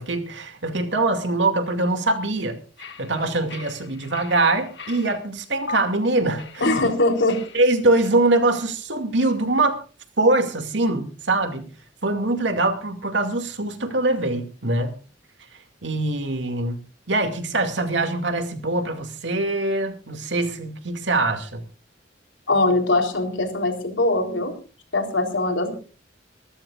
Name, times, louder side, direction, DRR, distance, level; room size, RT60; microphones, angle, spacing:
voice 1, 0.0-2.6 3.0-6.8 7.5-9.8 10.2-11.7 12.0-14.9 15.8-16.8 17.1-21.6, right 2 dB, 70° right, 2.4 m, -23 dB
sound 1, 2.8-5.2 5.7-5.8 6.4-8.1, left 4 dB, 65° left, 2.3 m, -39 dB
voice 2, 6.6-7.4 22.5-24.5 24.9-25.7, left 2 dB, 90° left, 3.9 m, -21 dB
25.0 x 14.0 x 2.5 m
head